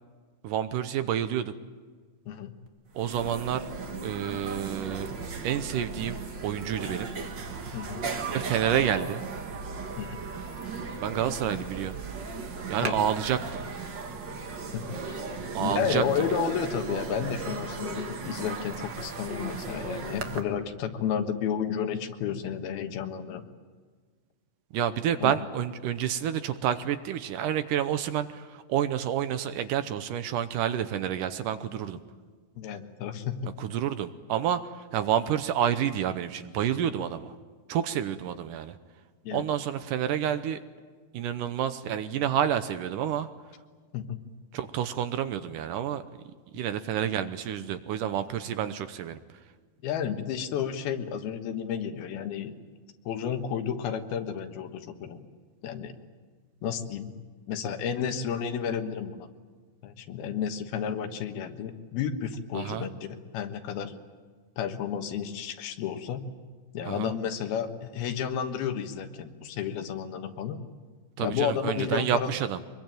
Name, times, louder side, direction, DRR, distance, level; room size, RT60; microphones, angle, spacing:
voice 1, 0.4-1.5 3.0-3.7 4.0-5.1 5.4-7.1 8.3-9.2 11.0-12.0 12.7-13.6 15.5-16.4 24.7-32.0 33.6-37.3 37.7-38.8 39.3-40.6 41.1-43.3 44.5-46.0 46.5-49.2 62.5-62.9 66.9-67.1 71.2-72.6, right 10 dB, 75° right, 11 dB, 2.2 m, -29 dB
sound 1, 2.7-2.8 2.9-20.4, right 4 dB, 45° right, 1.6 m, -36 dB
voice 2, 7.7-8.0 10.0-10.2 12.8-13.0 14.7-15.2 15.6-23.4 25.2-25.4 32.6-33.4 39.2-39.4 43.9-44.2 49.8-52.5 53.1-55.3 55.6-55.9 56.6-57.1 57.5-59.3 59.8-63.1 63.3-63.9 64.6-66.3 66.7-70.6 71.2-72.3, left 8 dB, 85° left, 7 dB, 3.4 m, -32 dB
24.0 x 22.0 x 9.1 m, 1.5 s
omnidirectional pair, 4.3 m